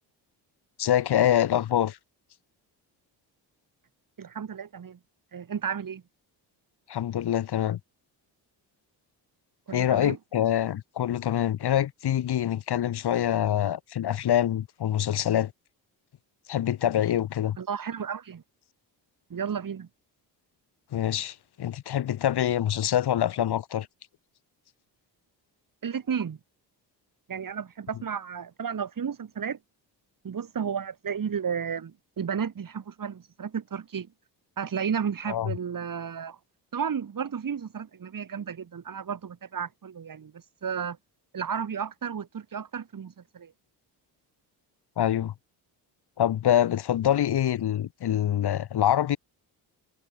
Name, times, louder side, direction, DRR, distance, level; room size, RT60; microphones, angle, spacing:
voice 1, 0.8-2.0 6.9-7.8 9.7-15.5 16.5-17.6 20.9-23.9 35.3-35.5 45.0-45.3 46.2-49.2, left 11 dB, 60° left, 1.6 m, -25 dB
voice 2, 4.2-5.0 5.3-6.0 9.7-10.2 17.6-18.4 19.3-19.9 25.8-26.4 27.3-29.6 30.2-34.1 34.6-36.4 36.7-41.0 41.3-43.5, right 7 dB, 45° right, 4.5 m, -33 dB
cardioid pair, 85°, 44 cm